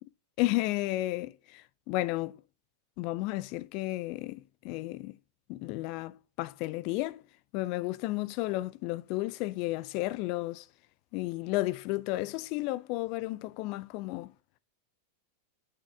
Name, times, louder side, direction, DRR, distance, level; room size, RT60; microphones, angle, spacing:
voice 1, 0.4-2.4 3.0-5.2 5.5-7.2 7.5-10.7 11.1-14.3, left 18 dB, 45° left, 0.4 m, -33 dB
6.4 x 5.9 x 3.6 m
figure-of-eight pair, 90°, 0 cm